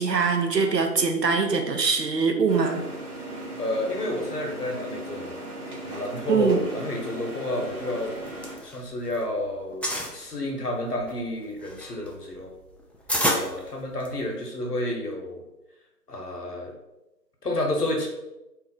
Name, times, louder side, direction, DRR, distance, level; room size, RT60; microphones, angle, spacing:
voice 1, 0.0-2.8 6.3-6.6, right 5 dB, 80° right, 4 dB, 0.7 m, -23 dB
sound 1, 2.5-8.6, right 1 dB, 65° right, 1.1 m, -37 dB
voice 2, 3.6-5.4 5.8-8.1 8.5-12.5 13.3-15.4 16.1-16.7 17.4-18.1, left 1 dB, 70° left, 1 dB, 0.9 m, -30 dB
sound 2, 8.1-9.2 9.5-10.2 10.8-14.3, equal, 5° left, 0.3 m, -29 dB
2.6 x 2.3 x 3.8 m, 0.96 s
figure-of-eight pair, 170°, 49 cm